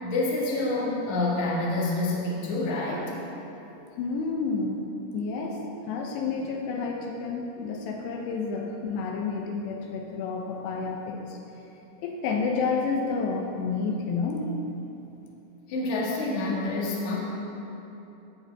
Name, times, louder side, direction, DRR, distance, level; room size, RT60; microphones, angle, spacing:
voice 1, 0.0-3.0 15.7-17.2, left 2 dB, 55° left, -4 dB, 2.7 m, -27 dB
voice 2, 4.0-4.8 5.1-11.4 12.0-14.6, left 4 dB, 85° left, 0 dB, 3.0 m, -30 dB
16.5 x 8.6 x 3.5 m, 2.9 s
omnidirectional pair, 4.9 m